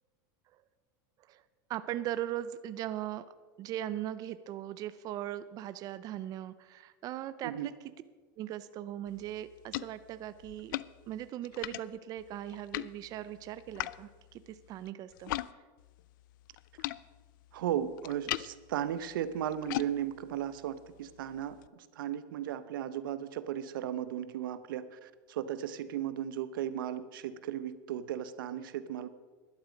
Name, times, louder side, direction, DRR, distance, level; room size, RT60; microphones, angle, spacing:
voice 1, 1.7-3.3 3.6-7.7 8.4-10.7 11.1-15.3, right 12 dB, 35° right, 13 dB, 0.5 m, -39 dB
sound 1, 9.1-15.5 15.8-21.7, left 16 dB, 75° left, 0.4 m, -42 dB
voice 2, 17.5-29.1, right 10 dB, 90° right, 14 dB, 0.8 m, -36 dB
12.5 x 11.5 x 5.1 m, 1.4 s
supercardioid pair, 145°, 11 cm